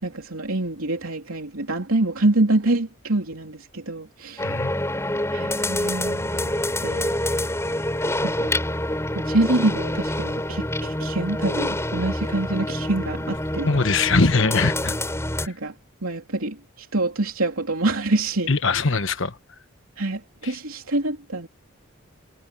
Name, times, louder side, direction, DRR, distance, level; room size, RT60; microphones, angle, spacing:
voice 1, 0.0-4.5 5.3-6.5 6.8-7.4 8.2-8.6 9.1-13.7 15.5-15.7 16.0-18.5 20.0-21.5, right 2 dB, 85° right, 3.1 m, -26 dB
voice 2, 4.4-4.7 13.6-14.9 15.4-15.5 18.5-19.4, left 4 dB, 65° left, 1.2 m, -21 dB
sound 1, 4.4-15.5, left 1 dB, 15° left, 5.7 m, -27 dB
head